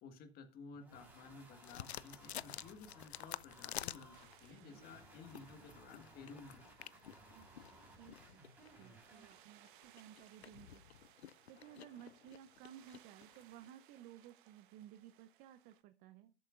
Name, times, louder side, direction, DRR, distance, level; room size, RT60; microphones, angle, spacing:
voice 1, 0.0-6.7, left 4 dB, 30° left, 8 dB, 1.6 m, -55 dB
sound 1, 0.7-9.5, right 2 dB, 5° right, 4.0 m, -61 dB
sound 2, 1.6-4.6 5.1-13.7, left 11 dB, 80° left, 0.5 m, -51 dB
sound 3, 4.1-15.8, right 12 dB, 50° right, 1.1 m, -66 dB
voice 2, 7.3-8.5 8.7-10.8 11.5-16.3, right 11 dB, 25° right, 11 dB, 0.6 m, -57 dB
13.0 x 7.7 x 2.5 m, 0.34 s
hypercardioid pair, 115°, 32 cm